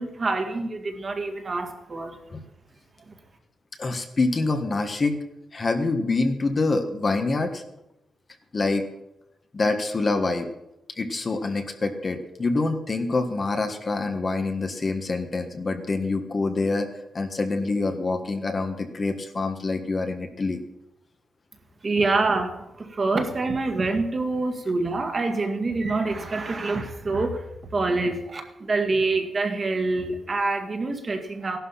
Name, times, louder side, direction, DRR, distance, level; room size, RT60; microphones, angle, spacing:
voice 1, 0.0-2.2 3.1-3.2 21.8-27.4 27.7-31.6, right 3 dB, 30° right, 4 dB, 2.0 m, -26 dB
voice 2, 3.8-5.2 5.5-7.6 8.5-8.9 9.5-10.5 11.0-16.9 17.1-20.6, left 3 dB, 30° left, 6 dB, 1.5 m, -26 dB
16.5 x 12.0 x 5.7 m, 0.88 s
wide cardioid pair, 145°, 0 cm